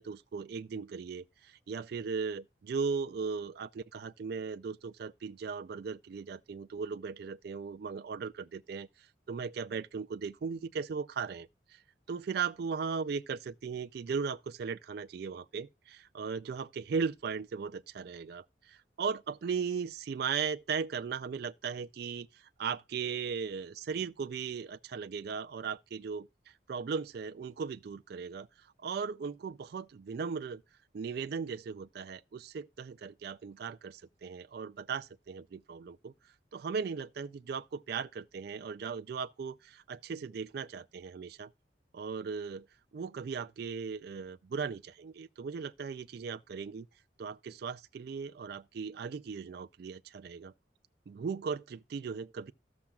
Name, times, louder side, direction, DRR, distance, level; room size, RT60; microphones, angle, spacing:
voice 1, 0.0-11.8 12.1-26.3 26.7-28.5 28.8-30.6 30.9-36.1 36.5-41.5 41.9-42.7 42.9-46.9 47.2-50.5 51.1-52.5, right 5 dB, 55° right, 0.3 m, -37 dB
13.0 x 7.1 x 2.3 m
head